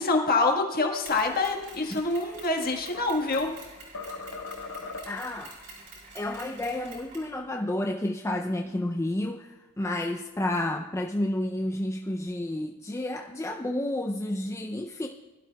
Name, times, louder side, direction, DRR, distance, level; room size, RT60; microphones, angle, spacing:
voice 1, 0.0-3.5, left 3 dB, 45° left, 2 dB, 1.5 m, -26 dB
Mechanisms, 1.0-7.3, right 3 dB, 50° right, 4.9 m, -47 dB
sound 1, 2.2-3.6 3.9-5.4, left 3 dB, 70° left, 1.0 m, -40 dB
voice 2, 5.1-5.6 6.1-15.1, left 1 dB, 15° left, 2 dB, 0.4 m, -30 dB
21.0 x 12.0 x 2.3 m, 1.2 s
head